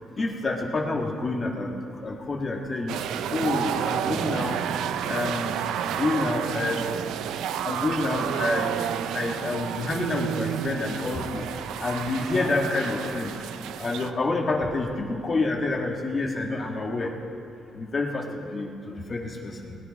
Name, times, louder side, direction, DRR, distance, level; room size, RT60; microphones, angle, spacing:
voice 1, 0.0-3.0 3.3-4.6 5.1-5.5 5.9-6.9 7.6-8.8 9.1-13.4 13.8-17.1 17.7-19.8, left 2 dB, 35° left, 0 dB, 1.6 m, -28 dB
sound 1, 2.9-14.1, right 9 dB, 85° right, 0.5 m, -30 dB
19.0 x 9.2 x 5.2 m, 2.8 s
cardioid pair, 90°, 0 cm